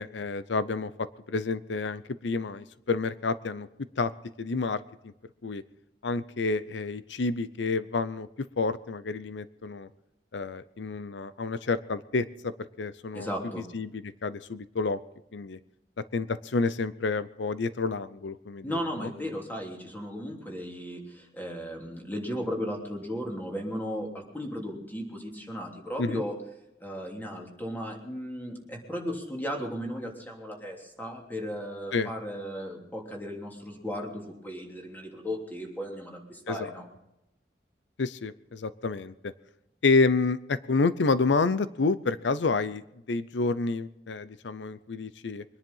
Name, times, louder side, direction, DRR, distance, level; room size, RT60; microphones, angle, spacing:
voice 1, 0.0-3.7 4.0-4.1 4.4-4.8 5.4-5.6 6.0-8.3 8.6-9.9 10.3-13.3 13.7-15.0 15.3-15.6 16.1-19.1 26.0-26.2 31.9-32.1 36.5-36.6 38.0-39.3 39.8-42.8 43.1-45.4, left 3 dB, 85° left, 15 dB, 0.6 m, -29 dB
voice 2, 13.1-13.6 18.6-26.4 26.8-36.8, equal, 10° left, 1 dB, 3.1 m, -36 dB
23.0 x 10.5 x 5.6 m, 0.88 s
head